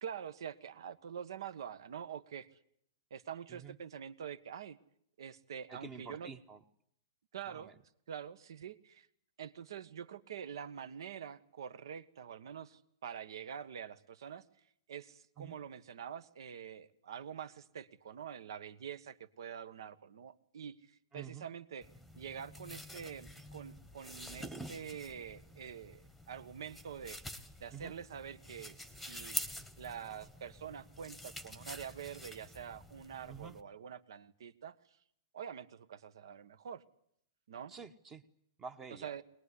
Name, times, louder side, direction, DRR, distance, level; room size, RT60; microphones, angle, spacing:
voice 1, 0.0-2.5 3.1-4.8 5.2-6.3 7.3-7.7 8.1-9.1 9.4-14.4 14.9-20.8 21.1-21.9 22.1-27.2 27.6-29.5 29.8-34.7 35.3-36.8 37.5-37.7 38.9-39.2, right 8 dB, 75° right, 14 dB, 1.4 m, -46 dB
voice 2, 5.7-6.6 7.5-7.7 15.4-15.6 21.1-21.5 27.7-27.9 33.3-33.6 37.7-38.2 38.6-39.1, right 6 dB, 15° right, 12 dB, 1.0 m, -48 dB
sound 1, 21.8-33.6, left 1 dB, ahead, 1.2 m, -47 dB
22.5 x 20.0 x 9.8 m, 0.71 s
hypercardioid pair, 165°, 2 cm